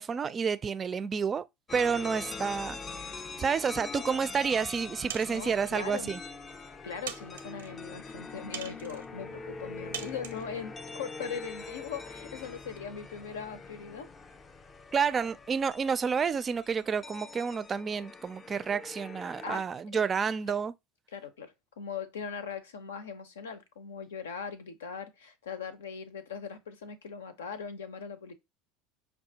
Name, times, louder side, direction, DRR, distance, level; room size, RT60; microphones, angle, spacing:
voice 1, 0.0-1.4 1.7-2.8 3.4-6.2 14.9-20.7, right 6 dB, 30° right, 0.4 m, -30 dB
sound 1, 1.7-19.6, left 4 dB, 30° left, 0.5 m, -43 dB
sound 2, 5.1-5.6 6.4-6.5 7.1-7.7 8.5-9.1 9.9-10.5, right 8 dB, 85° right, 0.6 m, -41 dB
voice 2, 5.3-6.1 6.8-14.1 19.4-19.6 19.9-20.0 21.1-28.3, left 6 dB, 85° left, 0.7 m, -40 dB
5.6 x 2.3 x 2.8 m
hypercardioid pair, 75°, 0 cm